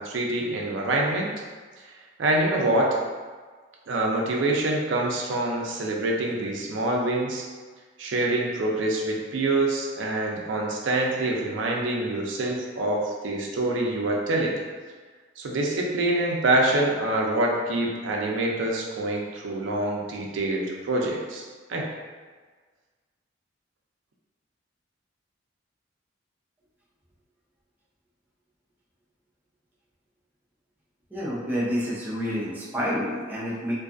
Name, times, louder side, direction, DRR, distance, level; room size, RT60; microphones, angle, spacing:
voice 1, 0.0-1.3 2.2-2.9 3.9-7.5 8.0-14.6 15.4-21.4 21.7-21.9, right 2 dB, 85° right, -1 dB, 0.5 m, -25 dB
voice 2, 31.1-33.7, equal, 10° right, -9 dB, 0.6 m, -28 dB
2.5 x 2.3 x 2.5 m, 1.5 s
head